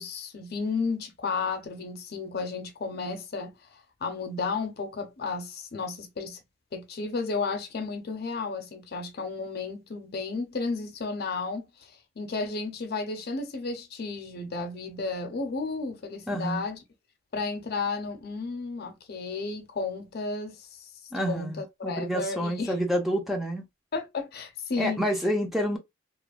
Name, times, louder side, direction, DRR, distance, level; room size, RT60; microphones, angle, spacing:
voice 1, 0.0-3.5 4.0-6.4 6.7-11.7 12.2-16.8 17.3-20.7 21.3-22.7 23.9-25.0, left 4 dB, 55° left, 0.6 m, -33 dB
voice 2, 16.3-16.6 21.1-23.6 24.8-25.8, equal, ahead, 0.5 m, -28 dB
2.9 x 2.1 x 2.3 m
head